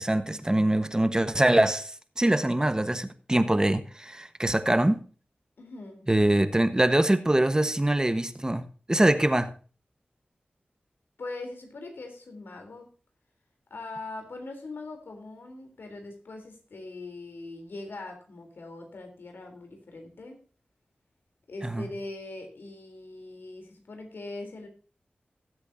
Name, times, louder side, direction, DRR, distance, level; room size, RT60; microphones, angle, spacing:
voice 1, 0.0-5.0 6.1-9.5 21.6-21.9, right 1 dB, 20° right, 1.3 m, -23 dB
voice 2, 5.6-6.1 11.2-12.9 13.7-20.4 21.5-24.7, left 2 dB, 85° left, 3.5 m, -41 dB
19.0 x 8.1 x 2.7 m
cardioid pair, 50°, 4 cm